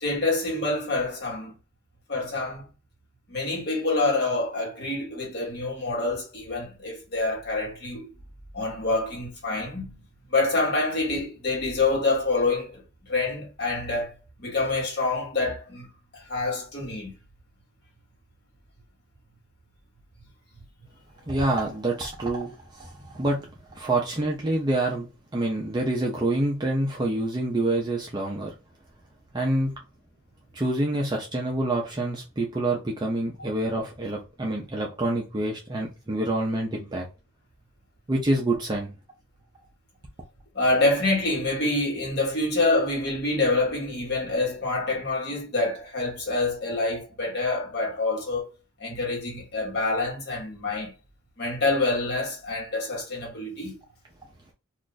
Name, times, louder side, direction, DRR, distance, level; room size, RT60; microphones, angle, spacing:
voice 1, 0.0-1.5 2.1-2.6 3.3-8.1 8.5-10.0 10.3-12.8 13.1-14.1 14.4-15.9 16.1-17.1 40.5-48.5 48.8-50.9 51.4-53.7, left 2 dB, 45° left, 1.2 m, -26 dB
voice 2, 21.3-23.4 23.7-28.5 29.3-29.7 30.5-37.0 38.1-38.9, right 1 dB, 20° right, 0.4 m, -27 dB
2.4 x 2.4 x 3.8 m
head